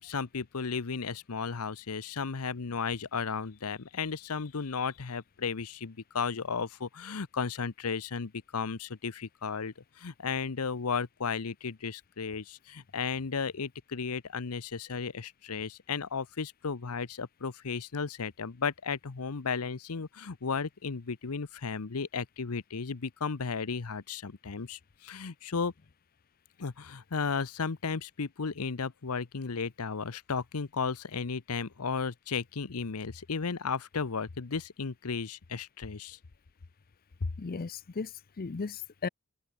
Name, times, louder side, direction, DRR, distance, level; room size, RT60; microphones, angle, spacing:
voice 1, 0.0-25.7 26.6-36.2 37.2-37.3, left 5 dB, 75° left, 0.8 m, -34 dB
voice 2, 37.4-39.1, left 4 dB, 40° left, 0.5 m, -36 dB
open air
head